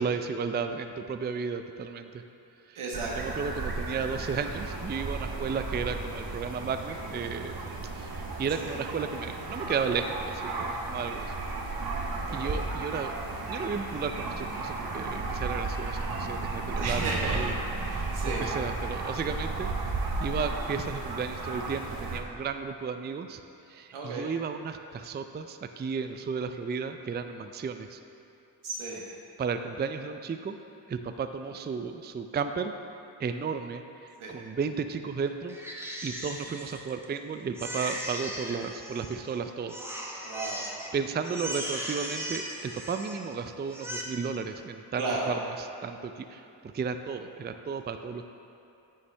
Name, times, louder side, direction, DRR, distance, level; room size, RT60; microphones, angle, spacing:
voice 1, 0.0-2.2 2.7-2.8 3.2-7.6 8.0-11.3 12.3-13.1 13.4-17.5 17.9-19.7 20.2-23.4 23.7-28.0 29.4-30.6 30.9-32.7 33.2-33.8 34.3-35.6 36.0-39.8 40.9-45.5 45.8-48.2, right 5 dB, 25° right, 8 dB, 0.4 m, -33 dB
voice 2, 2.7-3.4 8.5-8.7 12.3-12.6 16.8-18.5 23.9-24.3 28.6-29.0 34.2-34.3 40.2-40.6 45.0-45.3, right 3 dB, 85° right, -3 dB, 1.4 m, -34 dB
sound 1, 2.9-22.2, right 3 dB, 45° right, 1.1 m, -34 dB
Crying sobbing, 35.5-37.2 37.6-39.3 39.7-40.9 41.2-43.3 43.7-44.0, equal, 5° right, 1.2 m, -38 dB
9.5 x 5.8 x 3.4 m, 2.8 s
supercardioid pair, 40°, 49 cm